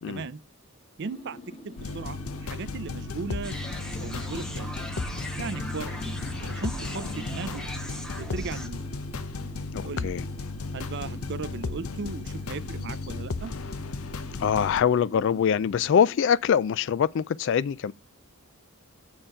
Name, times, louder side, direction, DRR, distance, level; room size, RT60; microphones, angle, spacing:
voice 1, 0.1-0.4 1.0-1.4 1.6-3.6 4.0-4.7 5.4-6.1 6.4-7.6 8.2-8.8 9.8-10.1 10.7-13.5, right 4 dB, 55° right, 0.5 m, -37 dB
sound 1, 1.0-16.2, left 2 dB, 30° left, 1.5 m, -46 dB
sound 2, 1.8-14.8, left 3 dB, 85° left, 0.9 m, -35 dB
sound 3, 3.4-8.7, equal, 5° left, 0.9 m, -39 dB
voice 2, 9.7-10.2 14.4-17.9, left 8 dB, 55° left, 0.3 m, -24 dB
7.2 x 4.6 x 6.4 m
head